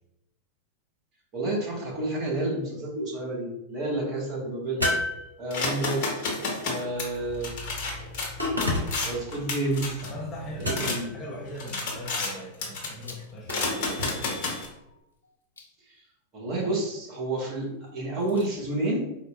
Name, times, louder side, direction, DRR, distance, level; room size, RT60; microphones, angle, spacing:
voice 1, 1.3-4.9 5.4-6.0 6.6-7.5 9.0-9.9 10.6-11.1 15.9-16.0 16.3-19.1, right 2 dB, 35° right, -4 dB, 1.2 m, -30 dB
sound 1, 4.8-5.9 8.4-9.2 10.6-11.2 13.5-14.2, left 1 dB, 80° right, 0.8 m, -29 dB
sound 2, 5.5-11.0 11.4-12.3 12.6-13.0 13.5-14.7, left 3 dB, 50° left, 0.9 m, -32 dB
voice 2, 10.0-14.6, left 1 dB, 20° left, -2 dB, 0.6 m, -40 dB
sound 3, 13.0-13.4 14.1-15.8 17.9-18.5, left 3 dB, 75° left, 0.5 m, -46 dB
4.2 x 2.1 x 2.3 m, 0.87 s
figure-of-eight pair, 90°, 0 cm